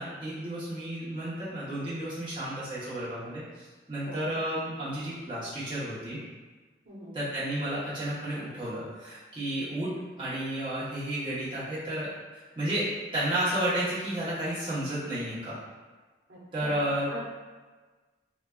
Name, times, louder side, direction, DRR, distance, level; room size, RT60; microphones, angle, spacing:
voice 1, 0.0-6.2 7.1-9.9 10.2-15.6 16.5-17.1, right 1 dB, 30° right, -11 dB, 1.0 m, -32 dB
voice 2, 4.0-4.4 6.8-7.2 16.3-17.2, equal, 80° right, -7 dB, 0.9 m, -43 dB
4.2 x 2.2 x 2.3 m, 1.3 s
head